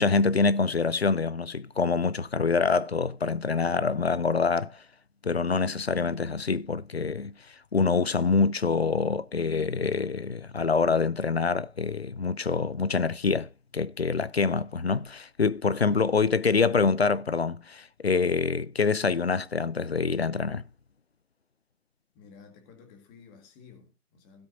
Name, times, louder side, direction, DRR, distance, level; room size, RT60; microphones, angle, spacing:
voice 1, 0.0-4.8 5.2-20.6, left 4 dB, 45° left, 0.5 m, -26 dB
voice 2, 22.1-24.5, left 6 dB, 10° left, 1.8 m, -53 dB
16.5 x 8.7 x 2.6 m
figure-of-eight pair, 155°, 47 cm